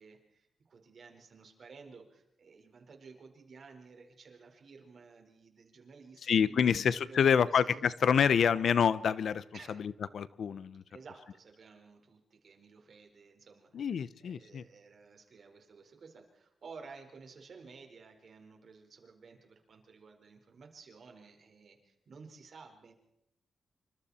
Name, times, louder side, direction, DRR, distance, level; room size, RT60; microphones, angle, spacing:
voice 1, 0.0-6.7 7.1-7.8 8.1-8.6 9.5-9.8 10.9-22.9, right 4 dB, 50° right, 3 dB, 4.7 m, -54 dB
voice 2, 6.3-10.8 13.7-14.6, left 7 dB, 65° left, 17 dB, 0.8 m, -27 dB
27.5 x 25.5 x 4.4 m, 0.80 s
wide cardioid pair, 135°, 0 cm